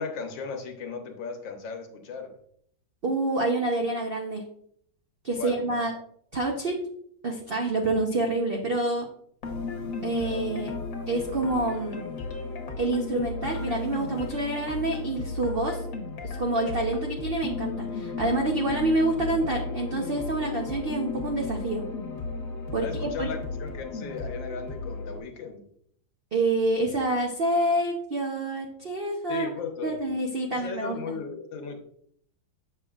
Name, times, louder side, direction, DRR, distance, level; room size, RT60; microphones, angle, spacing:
voice 1, 0.0-2.3 5.4-5.8 22.8-25.7 29.3-30.0 30.5-31.8, left 5 dB, 75° left, 5 dB, 1.7 m, -36 dB
voice 2, 3.0-4.4 5.2-5.9 6.3-6.8 7.2-9.1 10.0-10.7 11.1-12.1 12.8-15.8 16.2-21.8 22.7-23.3 26.3-29.5 29.8-31.1, right 2 dB, 50° right, 1 dB, 0.6 m, -27 dB
sound 1, 9.4-25.2, left 3 dB, 50° left, 1.4 m, -34 dB
7.9 x 6.3 x 2.4 m, 0.66 s
omnidirectional pair, 2.1 m